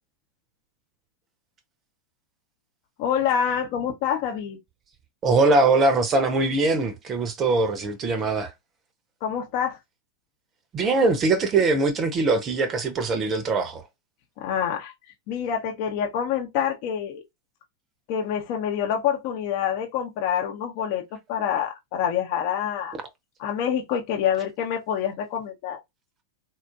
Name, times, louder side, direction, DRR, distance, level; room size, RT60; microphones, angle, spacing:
voice 1, 3.0-4.6 9.2-9.8 14.4-17.2 18.1-21.0 21.3-22.9 23.4-25.8, left 8 dB, 45° left, 0.8 m, -26 dB
voice 2, 5.2-8.5 10.7-13.8, right 3 dB, 25° right, 0.7 m, -22 dB
4.1 x 2.5 x 2.3 m
figure-of-eight pair, 90°, 0 cm